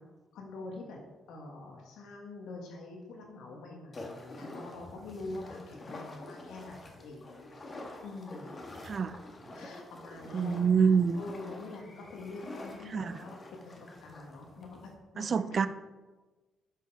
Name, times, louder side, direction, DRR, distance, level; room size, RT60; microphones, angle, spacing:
voice 1, 0.3-1.0 1.3-7.7 8.0-8.5 9.5-13.8 14.0-14.8 15.1-15.5, left 2 dB, 80° left, 0 dB, 1.8 m, -45 dB
sound 1, 3.9-14.9, left 2 dB, 35° left, 1.9 m, -47 dB
voice 2, 10.3-11.2 12.9-13.2 15.2-15.7, right 6 dB, 45° right, 13 dB, 0.6 m, -26 dB
11.0 x 5.5 x 4.9 m, 1.3 s
cardioid pair, 90°, 0 cm